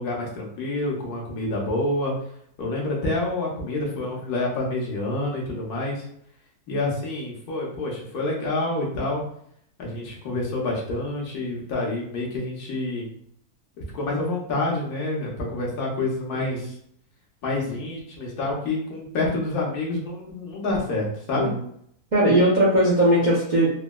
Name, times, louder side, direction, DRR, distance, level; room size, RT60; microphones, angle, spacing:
voice 1, 0.0-2.1 2.6-6.0 6.7-9.2 9.8-13.1 13.9-16.7 17.4-21.5, left 2 dB, 75° left, -3 dB, 1.4 m, -28 dB
voice 2, 16.3-16.7 21.3-21.6 22.1-23.7, right 1 dB, 45° right, -6 dB, 0.6 m, -19 dB
3.9 x 2.1 x 2.2 m, 0.67 s
omnidirectional pair, 1.6 m